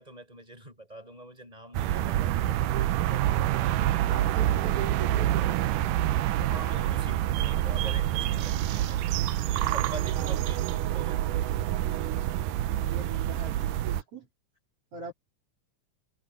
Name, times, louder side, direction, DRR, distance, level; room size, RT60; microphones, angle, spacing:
voice 1, 0.0-2.8 6.5-9.1 9.4-11.3, right 1 dB, 10° right, 7.9 m, -45 dB
sound 1, 1.7-14.0, right 13 dB, 80° right, 2.3 m, -27 dB
voice 2, 1.9-3.5 4.1-6.9 10.1-10.4 12.7-14.3 14.9-15.1, right 4 dB, 45° right, 4.2 m, -42 dB
omnidirectional pair, 3.8 m